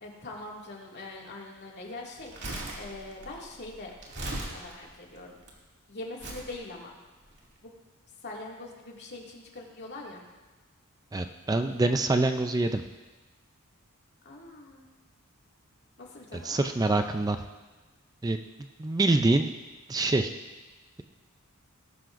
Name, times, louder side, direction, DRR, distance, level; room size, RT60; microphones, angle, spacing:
voice 1, 0.0-2.3 2.8-3.9 4.5-5.4 5.9-7.0 7.6-7.7 8.2-10.2 14.2-14.9 16.0-16.6, left 2 dB, 50° left, -2 dB, 2.2 m, -42 dB
Crumpling crinkling, 2.2-5.5 6.2-6.5 7.3-7.4, right 1 dB, 55° right, 2.4 m, -38 dB
voice 2, 11.1-12.8 16.3-17.4 18.2-18.4 18.8-19.5 19.9-20.3, right 2 dB, 15° right, 6 dB, 0.4 m, -25 dB
19.0 x 11.5 x 2.6 m, 1.2 s
head